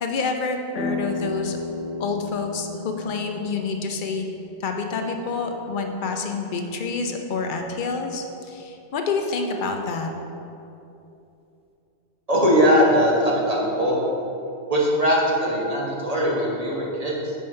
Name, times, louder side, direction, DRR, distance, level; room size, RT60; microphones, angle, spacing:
voice 1, 0.0-1.6 2.0-4.3 4.6-10.1, left 4 dB, 55° left, 4 dB, 0.7 m, -28 dB
sound 1, 0.7-6.3, left 3 dB, 10° right, 0.4 m, -34 dB
voice 2, 12.3-14.0 14.7-17.3, equal, 35° right, -4 dB, 1.1 m, -20 dB
5.5 x 4.4 x 5.3 m, 2.8 s
omnidirectional pair, 1.2 m